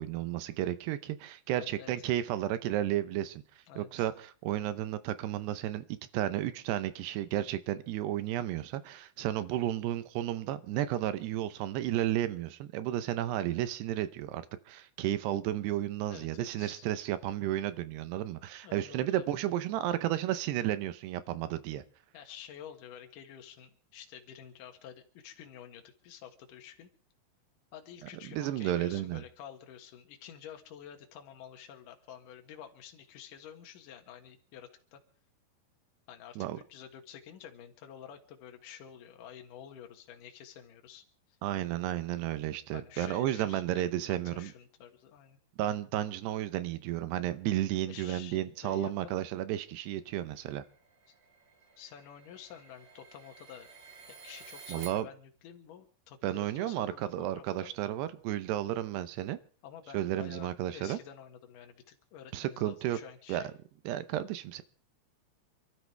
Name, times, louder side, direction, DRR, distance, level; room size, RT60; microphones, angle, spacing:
voice 1, 0.0-5.8 6.1-21.8 28.3-29.2 36.4-36.6 41.4-44.5 45.6-50.6 54.7-55.1 56.2-59.4 59.9-61.0 62.3-63.0 63.3-63.4 63.9-64.6, right 13 dB, 80° right, 2.9 m, -33 dB
voice 2, 1.5-1.9 3.7-4.1 16.1-16.9 18.6-19.3 22.1-26.9 27.7-35.0 36.1-41.4 42.7-45.4 47.9-49.2 51.8-53.7 54.1-57.7 59.6-63.5, left 9 dB, 60° left, 3.0 m, -50 dB
sound 1, 50.3-54.9, right 5 dB, 45° right, 4.4 m, -52 dB
28.0 x 12.5 x 3.4 m
omnidirectional pair, 4.8 m